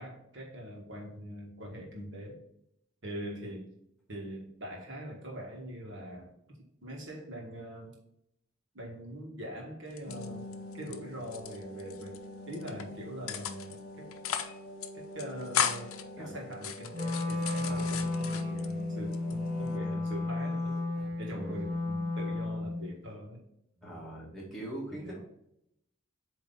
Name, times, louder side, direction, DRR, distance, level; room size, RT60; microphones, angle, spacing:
voice 1, 0.0-2.4 3.0-3.7 4.1-6.3 6.8-8.0 8.7-10.5 10.7-12.2 12.5-14.1 14.9-20.7 21.2-23.4 23.8-23.9 24.9-25.2, equal, 60° right, -1 dB, 1.7 m, -43 dB
sound 1, 9.9-11.0 11.2-12.2 12.5-12.8 13.3-13.8 14.1-14.6 14.8-14.9 15.2-16.0 16.5-18.7 19.1-19.8, left 8 dB, 90° left, 0.6 m, -35 dB
sound 2, 10.1-19.9, left 1 dB, 50° left, 1.3 m, -46 dB
voice 2, 16.2-16.6 17.6-18.1 20.4-21.7 23.8-25.2, right 1 dB, ahead, -5 dB, 1.8 m, -43 dB
Wind instrument woodwind instrument, 16.9-22.9, left 2 dB, 40° right, 1.3 m, -33 dB
8.0 x 3.2 x 3.9 m, 0.79 s
head